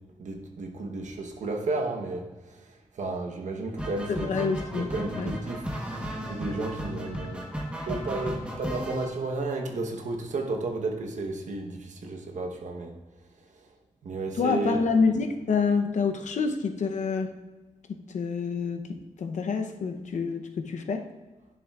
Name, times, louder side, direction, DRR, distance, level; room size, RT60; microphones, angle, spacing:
voice 1, 0.2-2.3 3.0-4.5 4.7-5.7 6.3-7.4 7.9-12.9 14.0-14.8, right 3 dB, 75° right, 3 dB, 1.0 m, -32 dB
sound 1, 3.8-9.1, equal, 10° right, 1.1 m, -35 dB
voice 2, 4.1-5.3 14.3-17.3 17.9-18.8 19.2-21.0, left 5 dB, 75° left, 6 dB, 0.7 m, -27 dB
10.5 x 7.0 x 2.4 m, 1.2 s
wide cardioid pair, 160°, 13 cm